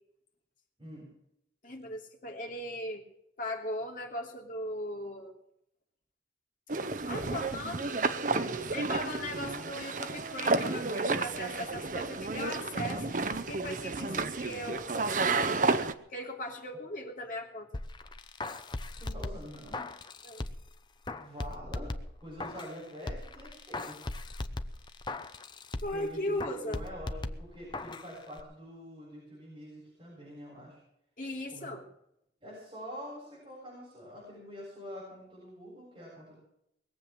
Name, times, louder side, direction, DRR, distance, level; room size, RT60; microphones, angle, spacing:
voice 1, 0.8-1.1 14.0-14.3 19.0-19.9 21.2-21.9 22.2-24.0 25.9-30.8 31.5-31.7 32.4-36.4, equal, 30° right, -6 dB, 7.6 m, -46 dB
voice 2, 1.6-3.0 3.4-5.4 7.1-8.0 8.5-13.1 13.5-14.1 14.3-15.4 16.1-17.7 20.2-20.4 25.8-26.8 31.2-31.8, left 1 dB, 50° left, 1 dB, 2.9 m, -38 dB
sound 1, 6.7-15.9, right 3 dB, 45° right, 0.8 m, -31 dB
sound 2, 17.7-20.7 21.1-22.8 23.1-26.1 26.4-28.1 28.4-28.5, left 2 dB, 25° left, 0.8 m, -39 dB
21.0 x 7.9 x 7.4 m, 0.77 s
head